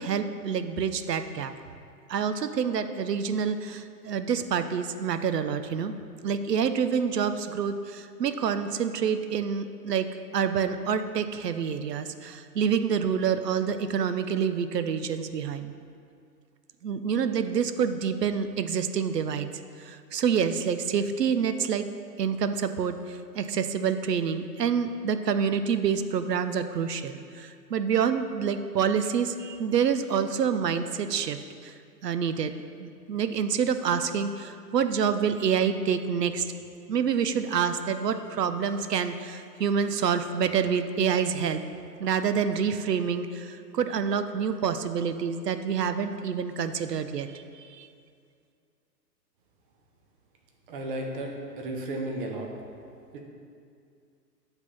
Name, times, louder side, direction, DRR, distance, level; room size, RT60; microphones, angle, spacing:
voice 1, 0.0-1.5 2.1-5.9 6.2-10.1 10.3-15.7 16.8-19.5 19.8-21.8 22.2-31.4 31.6-31.7 32.0-32.5 32.8-36.5 36.9-41.6 42.0-47.9, right 7 dB, 75° right, 10 dB, 0.6 m, -27 dB
voice 2, 50.7-52.5 53.1-53.2, right 1 dB, 35° right, 1 dB, 0.8 m, -34 dB
8.1 x 3.5 x 5.5 m, 2.3 s
figure-of-eight pair, 110°, 49 cm